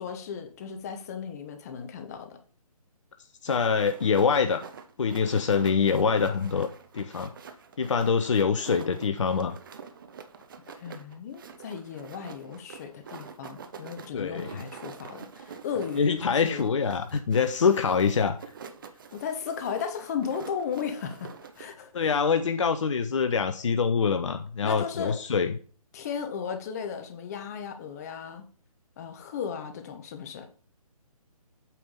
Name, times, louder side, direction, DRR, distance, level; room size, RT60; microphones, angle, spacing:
voice 1, 0.0-2.4 10.7-16.6 19.1-22.2 24.6-25.2 25.9-28.5 29.0-30.5, left 7 dB, 25° left, 7 dB, 0.9 m, -35 dB
voice 2, 3.4-4.6 5.0-6.7 6.9-7.3 7.8-9.6 14.1-14.5 16.0-18.4 21.9-25.6, left 5 dB, 55° left, 9 dB, 0.6 m, -25 dB
sound 1, 3.5-21.7, right 6 dB, 35° right, 0.6 m, -46 dB
8.4 x 3.5 x 5.6 m, 0.42 s
figure-of-eight pair, 140°, 19 cm